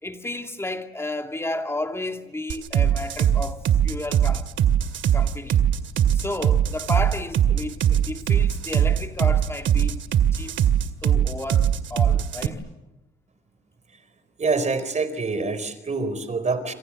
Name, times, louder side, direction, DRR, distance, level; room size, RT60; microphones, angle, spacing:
voice 1, 0.0-4.5 5.1-5.7 6.1-10.0 10.3-10.6 11.0-12.6, left 1 dB, 15° left, 2.5 m, -32 dB
sound 1, 2.5-12.5, right 10 dB, 75° right, 2.0 m, -20 dB
voice 2, 14.4-16.7, right 4 dB, 35° right, 4.3 m, -26 dB
28.0 x 26.5 x 7.4 m
cardioid pair, 90°, 20 cm